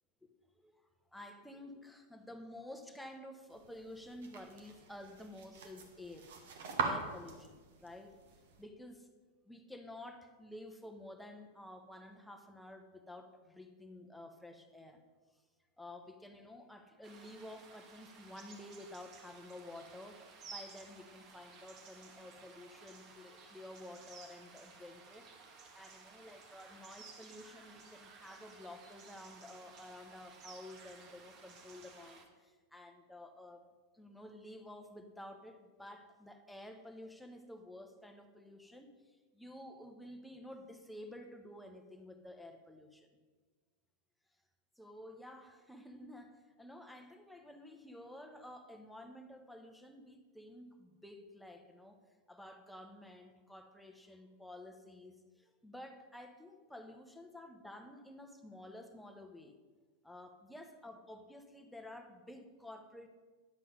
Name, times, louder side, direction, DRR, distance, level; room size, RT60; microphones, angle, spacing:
voice 1, 1.1-6.3 6.8-8.2 8.6-9.1 9.4-15.0 15.8-25.3 25.7-33.7 33.9-43.1 44.8-52.0 52.3-59.6 60.0-63.1, left 1 dB, ahead, 5 dB, 1.0 m, -51 dB
sound 1, 3.5-8.6, right 5 dB, 55° right, 1.4 m, -42 dB
sound 2, 17.0-32.2, right 4 dB, 35° right, 1.4 m, -56 dB
10.5 x 7.6 x 5.3 m, 1.4 s
figure-of-eight pair, 90°, 0 cm